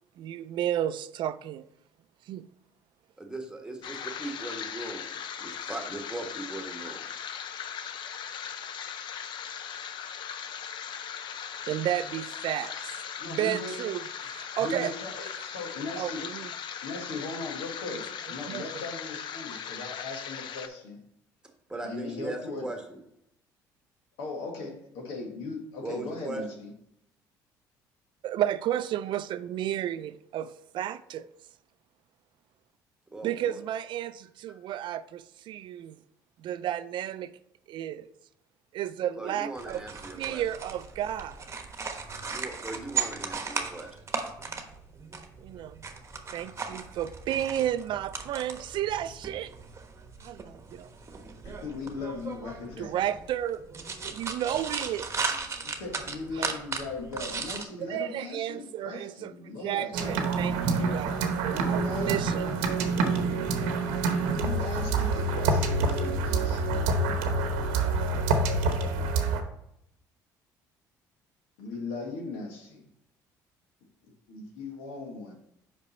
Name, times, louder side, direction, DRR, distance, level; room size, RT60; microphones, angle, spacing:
voice 1, 0.2-1.7 2.3-2.5 11.7-12.9 13.3-14.9 16.0-16.5 17.9-18.0 18.5-18.6 28.2-31.3 33.2-36.0 36.4-37.3 37.7-38.1 38.7-39.8 40.2-41.4 45.4-45.8 46.3-49.5 50.2-50.9 52.8-53.6 54.0-55.3 56.3-56.6 57.8-59.3 59.6-62.4, right 11 dB, 60° right, 0.4 m, -32 dB
voice 2, 3.2-7.0 21.7-23.0 25.8-26.4 33.1-33.6 39.1-40.4 42.3-44.0, right 2 dB, 10° right, 1.5 m, -39 dB
sound 1, 3.8-20.7, left 8 dB, 60° left, 0.6 m, -39 dB
voice 3, 13.2-13.7 14.2-16.3 16.8-18.0 18.3-21.0 21.8-22.7 24.2-26.7 51.4-52.9 55.6-60.2 61.5-62.1 64.3-66.8 71.6-72.9 74.3-75.3, left 3 dB, 80° left, 1.7 m, -38 dB
sound 2, 39.6-57.6, right 5 dB, 30° right, 1.1 m, -37 dB
sound 3, 59.9-69.4, right 3 dB, 80° right, 0.9 m, -27 dB
5.4 x 5.2 x 4.2 m
hypercardioid pair, 65°, 9 cm